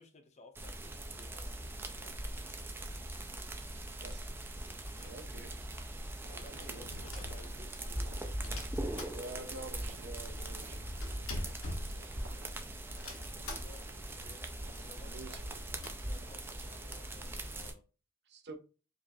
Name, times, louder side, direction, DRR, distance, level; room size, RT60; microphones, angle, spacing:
voice 1, 0.0-1.5 2.0-3.0 6.3-9.4 11.1-11.3 11.8-12.5 13.6-13.9 14.2-14.5 14.8-15.4 15.7-17.8, left 3 dB, 35° left, 0.6 m, -58 dB
sound 1, 0.5-17.7, right 1 dB, 10° right, 0.4 m, -41 dB
voice 2, 5.0-5.5 5.8-6.0 6.5-7.1 9.1-11.2 15.0-15.4 18.3-18.6, right 2 dB, 55° right, 0.6 m, -48 dB
sound 2, 6.2-17.2, right 1 dB, 85° right, 1.0 m, -58 dB
sound 3, 6.6-7.9 8.4-9.7 10.0-10.1 10.2-12.5 13.0-14.0 14.4-14.5 14.7-14.8 15.3-15.9, left 1 dB, 85° left, 1.0 m, -44 dB
4.9 x 2.4 x 2.6 m
head